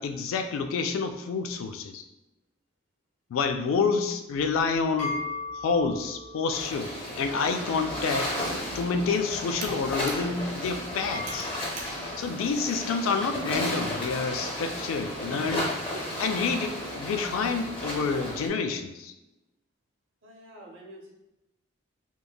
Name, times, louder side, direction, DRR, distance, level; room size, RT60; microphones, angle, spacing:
voice 1, 0.0-2.0 3.3-5.1 5.6-6.9 7.2-8.3 8.7-11.5 12.2-15.7 16.2-19.1, left 5 dB, 80° left, 8 dB, 0.3 m, -28 dB
sound 1, 4.4-12.9, left 3 dB, 55° left, 1.2 m, -41 dB
sound 2, 6.5-18.5, left 1 dB, 25° left, 0.5 m, -34 dB
Computer keyboard, 8.1-13.3, right 3 dB, 40° right, 0.4 m, -46 dB
voice 2, 20.2-21.1, equal, 75° right, 0 dB, 0.7 m, -47 dB
3.0 x 2.5 x 2.2 m, 0.95 s
head